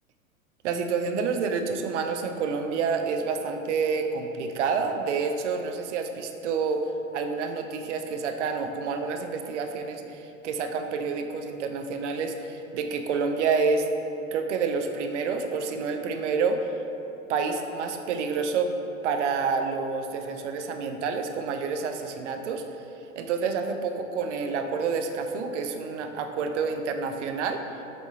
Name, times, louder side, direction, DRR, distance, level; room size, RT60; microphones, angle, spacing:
voice 1, 0.6-6.8 7.1-13.9 14.3-16.7 17.3-18.7 19.0-22.6 23.2-27.6, right 5 dB, 60° right, 6 dB, 0.5 m, -28 dB
5.0 x 3.4 x 2.8 m, 2.9 s
figure-of-eight pair, 90°, 42 cm